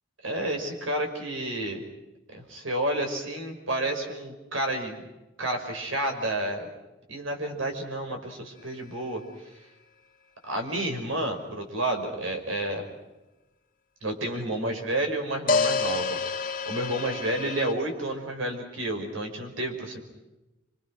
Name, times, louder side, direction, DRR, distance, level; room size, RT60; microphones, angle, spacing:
voice 1, 0.2-1.8 2.3-5.0 5.4-6.7 7.1-9.2 10.5-12.9 14.0-16.2 16.7-20.0, right 1 dB, 85° right, 4 dB, 5.4 m, -30 dB
sound 1, 8.6-8.7 15.5-17.7, left 4 dB, 45° left, 1.9 m, -28 dB
29.5 x 25.5 x 6.3 m, 1.0 s
head